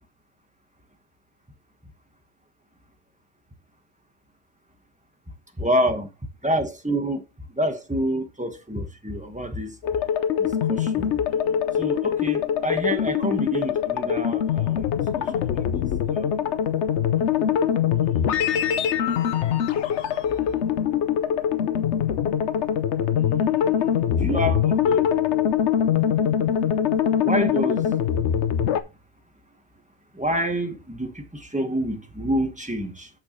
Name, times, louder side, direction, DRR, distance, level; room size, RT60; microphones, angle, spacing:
voice 1, 5.6-6.1 6.4-7.2 7.5-9.7 10.4-11.1 11.8-15.7 16.1-16.3 23.2-25.1 27.2-27.8 30.1-33.1, equal, 5° right, 1.1 m, -28 dB
sound 1, 9.8-28.8, left 8 dB, 60° left, 0.8 m, -23 dB
8.0 x 6.4 x 3.1 m
omnidirectional pair, 1.8 m